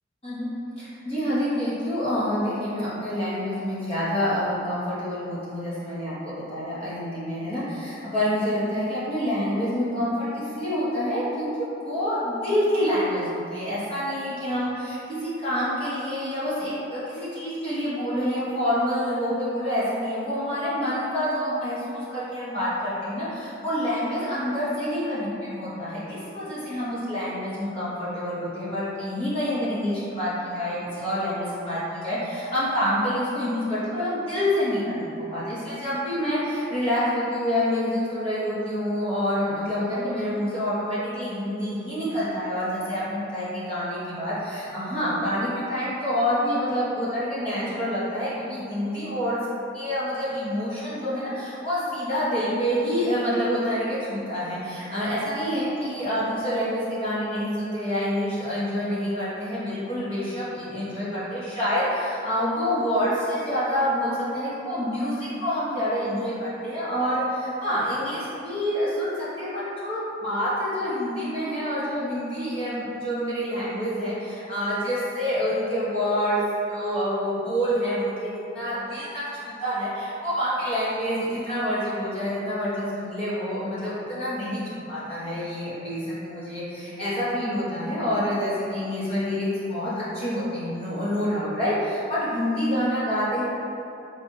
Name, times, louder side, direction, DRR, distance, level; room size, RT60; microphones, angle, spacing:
voice 1, 0.8-49.4 49.7-76.4 76.7-78.3 78.5-93.4, equal, 30° left, -11 dB, 1.0 m, -27 dB
3.9 x 2.5 x 3.8 m, 2.8 s
head